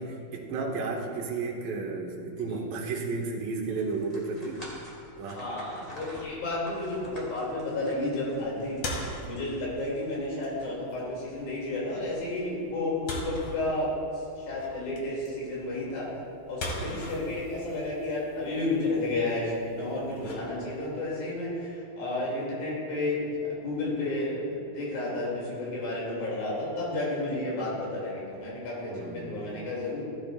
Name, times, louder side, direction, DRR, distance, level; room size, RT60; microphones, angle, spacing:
voice 1, 0.0-4.6 5.2-5.4 16.8-17.3 28.9-29.5, right 3 dB, 75° right, 0 dB, 2.8 m, -33 dB
sound 1, 3.7-9.9, equal, 15° left, 1.7 m, -48 dB
voice 2, 5.4-8.8 9.2-13.9 14.4-16.1 16.5-30.0, left 2 dB, 90° left, -5 dB, 4.4 m, -31 dB
sound 2, 5.9-21.0, left 1 dB, 55° left, 2.1 m, -42 dB
16.0 x 10.5 x 2.5 m, 2.5 s
omnidirectional pair, 4.0 m